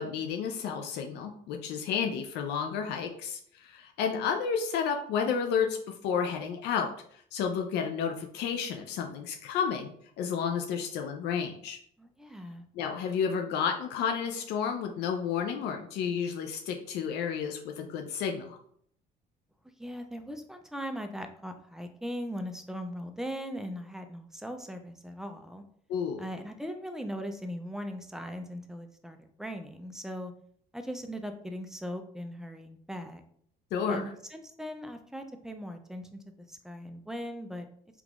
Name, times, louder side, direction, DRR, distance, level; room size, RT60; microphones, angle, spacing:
voice 1, 0.0-5.8 6.0-9.9 10.2-11.8 12.7-18.6 25.9-26.3 33.7-34.1, left 7 dB, 80° left, 4 dB, 0.5 m, -31 dB
voice 2, 12.0-12.7 19.8-25.6 26.2-30.3 30.7-33.2 33.9-36.2 36.5-37.6, equal, 5° right, 6 dB, 0.4 m, -39 dB
3.7 x 2.9 x 2.4 m, 0.63 s
cardioid pair, 110°, 17 cm